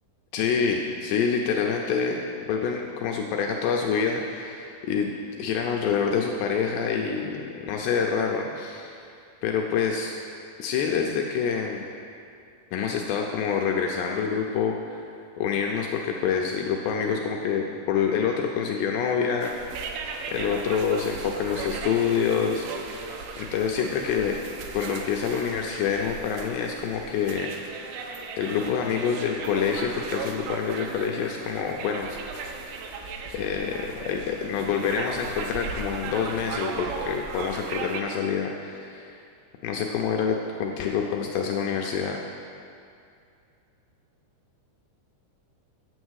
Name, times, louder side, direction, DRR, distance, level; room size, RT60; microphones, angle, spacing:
voice 1, 0.3-2.2 2.5-5.1 5.4-9.1 9.4-10.1 10.6-11.9 12.7-15.0 15.4-19.9 20.3-22.7 23.0-23.1 23.4-24.4 24.7-27.5 28.4-32.1 33.3-39.2 39.6-42.2, left 6 dB, 85° left, 1 dB, 2.4 m, -27 dB
sound 1, 19.4-38.0, right 4 dB, 80° right, 3.1 m, -37 dB
9.8 x 7.9 x 6.3 m, 2.5 s
omnidirectional pair, 5.4 m